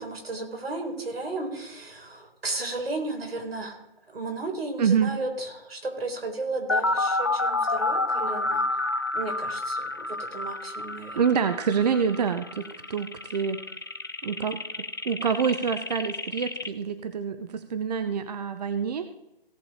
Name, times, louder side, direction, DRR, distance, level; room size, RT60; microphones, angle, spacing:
voice 1, 0.0-3.8 4.1-8.6 9.1-11.2, right 2 dB, 85° right, 3 dB, 4.0 m, -34 dB
voice 2, 4.8-5.1 11.2-13.6 14.2-14.6 15.0-19.1, right 6 dB, 45° right, 10 dB, 0.8 m, -26 dB
sound 1, 6.7-16.7, left 2 dB, 25° left, 0.3 m, -29 dB
17.0 x 7.0 x 4.3 m, 0.90 s
hypercardioid pair, 155°, 29 cm